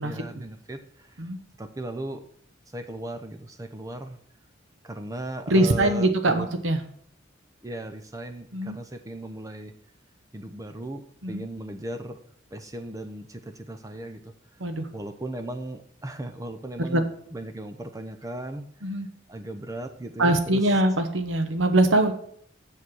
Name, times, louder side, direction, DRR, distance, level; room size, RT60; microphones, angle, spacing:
voice 1, 0.0-1.3 1.6-2.2 2.7-4.2 4.8-6.5 7.6-9.7 10.3-12.2 12.5-14.3 14.9-19.0 19.3-20.7, right 1 dB, 20° right, 7 dB, 0.6 m, -37 dB
voice 2, 5.5-6.8 8.5-8.8 11.2-11.4 14.6-14.9 16.9-17.0 18.8-19.1 20.2-22.1, right 1 dB, 70° right, 8 dB, 1.0 m, -22 dB
7.6 x 6.9 x 6.2 m, 0.62 s
head